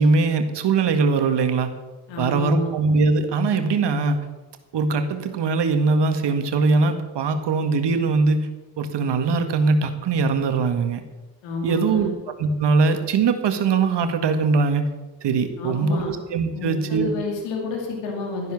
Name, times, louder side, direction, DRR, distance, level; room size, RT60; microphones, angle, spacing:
voice 1, 0.0-1.7 2.2-4.2 4.7-8.5 8.8-11.0 11.6-12.1 12.4-14.9 15.2-17.1, right 4 dB, 70° right, 7 dB, 1.9 m, -21 dB
voice 2, 2.1-2.7 11.4-12.1 15.6-16.1 16.5-18.5, left 3 dB, 90° left, 1 dB, 2.6 m, -29 dB
13.0 x 10.5 x 7.3 m, 1.2 s
hypercardioid pair, 45°, 44 cm